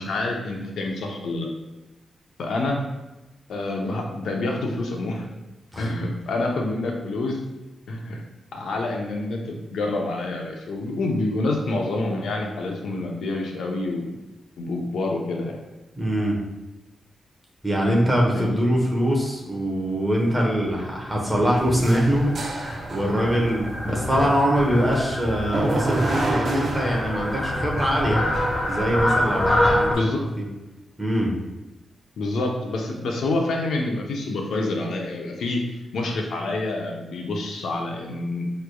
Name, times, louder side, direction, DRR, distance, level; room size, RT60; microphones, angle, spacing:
voice 1, 0.0-1.5 2.4-2.8 3.5-5.3 5.8-7.4 7.9-8.2 8.5-14.2 14.6-15.6 18.3-18.6 23.9-24.3 29.9-30.2 32.2-35.6 35.9-38.5, left 2 dB, 90° left, 1 dB, 0.7 m, -27 dB
voice 2, 16.0-16.4 17.6-28.2 28.7-30.1 30.4-30.5 31.0-31.3, equal, 10° right, -2 dB, 1.0 m, -23 dB
Fowl, 20.5-29.9, left 1 dB, 25° left, 0.9 m, -27 dB
sound 1, 21.6-29.9, right 2 dB, 55° right, 0.5 m, -31 dB
5.8 x 3.3 x 2.3 m, 1.0 s
wide cardioid pair, 110°, 0 cm